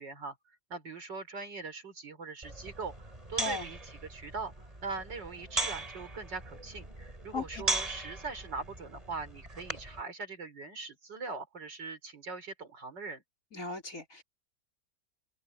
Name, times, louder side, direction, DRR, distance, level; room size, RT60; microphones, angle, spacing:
voice 1, 0.0-13.2, right 4 dB, 85° right, 4.9 m, -41 dB
sound 1, 2.4-10.0, right 2 dB, 20° right, 3.7 m, -38 dB
voice 2, 3.4-3.7 7.3-7.7 13.5-14.2, left 3 dB, 50° left, 4.7 m, -37 dB
omnidirectional pair, 1.9 m